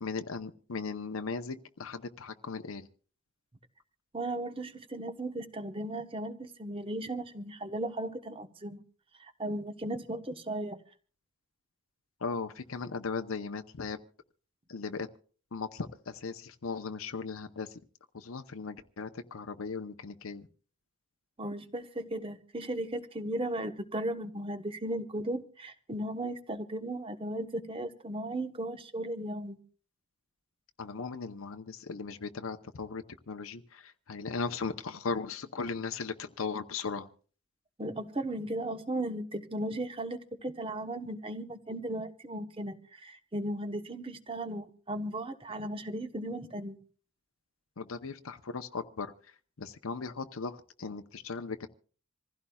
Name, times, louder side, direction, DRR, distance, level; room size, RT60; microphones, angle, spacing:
voice 1, 0.0-2.9 12.2-14.0 14.7-15.1 15.5-17.8 18.1-20.5 30.8-37.1 47.8-49.1 49.6-51.7, left 4 dB, 85° left, 7 dB, 0.8 m, -37 dB
voice 2, 4.1-8.8 9.2-10.8 21.4-29.6 37.8-46.8, right 1 dB, 25° right, 9 dB, 1.1 m, -36 dB
26.5 x 15.5 x 2.3 m, 0.41 s
head